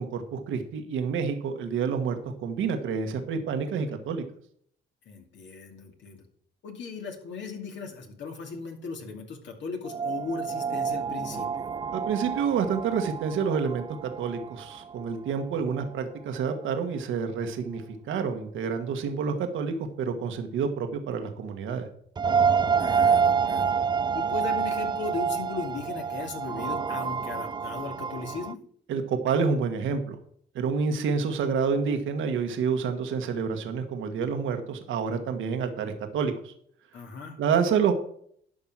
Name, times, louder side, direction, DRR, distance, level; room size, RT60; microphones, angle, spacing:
voice 1, 0.0-4.2 11.9-17.8 18.1-21.9 28.9-30.2 30.5-36.5 37.4-37.9, right 6 dB, 80° right, 6 dB, 1.4 m, -28 dB
voice 2, 5.1-6.2 6.6-11.7 15.6-15.8 22.7-23.7 24.1-28.6 36.9-37.4, left 4 dB, 65° left, 2 dB, 2.5 m, -37 dB
sound 1, 9.8-15.4 15.8-15.9 22.2-28.5, right 6 dB, 20° right, 0.3 m, -28 dB
11.5 x 5.4 x 6.1 m, 0.64 s
cardioid pair, 90°, 20 cm